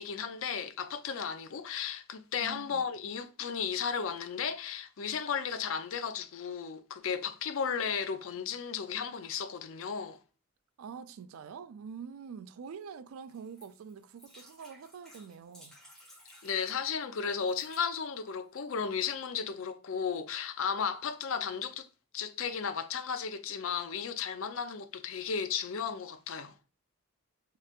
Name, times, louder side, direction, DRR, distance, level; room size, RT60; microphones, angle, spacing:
voice 1, 0.0-10.2 16.4-21.9 22.1-26.5, left 6 dB, 65° left, 0.4 m, -34 dB
voice 2, 2.4-2.8 10.8-15.8, right 6 dB, 75° right, 0.3 m, -45 dB
sound 1, 13.3-16.8 17.4-17.9 18.5-18.6 18.8-18.9, equal, ahead, 1.0 m, -57 dB
3.2 x 2.9 x 2.4 m
head